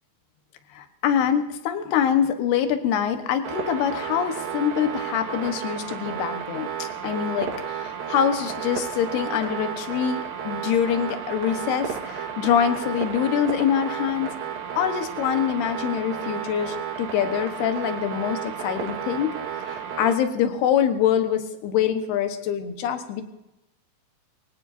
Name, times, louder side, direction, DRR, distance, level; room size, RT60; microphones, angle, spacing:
voice 1, 0.7-14.3 14.8-19.3 19.7-23.2, left 9 dB, 85° left, 7 dB, 3.3 m, -25 dB
sound 1, 3.4-20.2, right 8 dB, 65° right, 3.2 m, -32 dB
23.5 x 17.5 x 2.7 m, 0.94 s
omnidirectional pair, 4.5 m